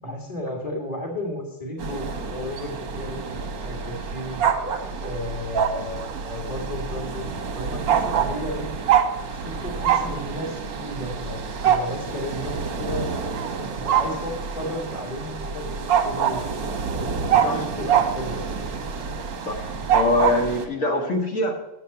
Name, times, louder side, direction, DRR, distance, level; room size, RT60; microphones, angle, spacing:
voice 1, 0.0-3.2 3.6-4.4 5.0-7.3 7.5-8.7 9.3-13.1 13.6-16.5 17.0-18.4, left 1 dB, 20° left, 0 dB, 1.7 m, -33 dB
sound 1, 1.8-20.7, right 7 dB, 65° right, 1.7 m, -26 dB
voice 2, 19.5-21.5, left 2 dB, 40° left, 2 dB, 1.8 m, -24 dB
8.7 x 7.3 x 6.9 m, 0.99 s
omnidirectional pair, 2.3 m